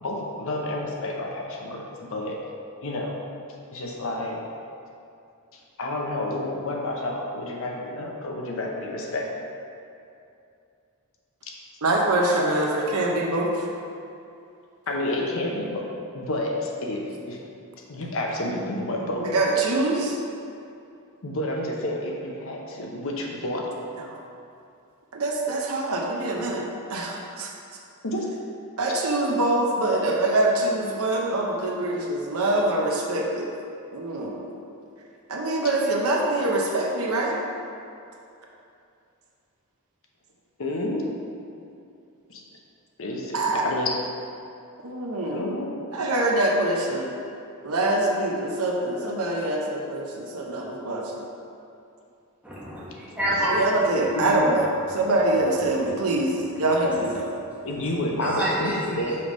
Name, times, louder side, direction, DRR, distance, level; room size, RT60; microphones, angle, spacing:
voice 1, 0.0-2.4 2.8-3.2 3.7-4.4 5.5-9.4 11.4-11.5 12.4-12.5 14.9-17.4 17.9-19.3 21.2-23.7 28.0-28.3 40.6-41.1 42.3-42.4 43.0-43.9 45.3-45.7 54.2-54.4 57.6-59.2, left 1 dB, 65° left, 0 dB, 0.8 m, -30 dB
voice 2, 11.8-13.7 19.2-20.2 24.0-24.2 25.1-26.6 26.9-27.8 28.8-33.5 33.9-34.5 35.3-37.4 43.3-43.6 44.8-45.5 45.9-47.2 47.6-51.3 53.5-57.3, right 2 dB, 75° right, -1 dB, 0.8 m, -24 dB
voice 3, 52.4-53.6 58.2-59.1, right 1 dB, 5° right, -9 dB, 1.3 m, -27 dB
5.6 x 3.4 x 5.2 m, 2.6 s
head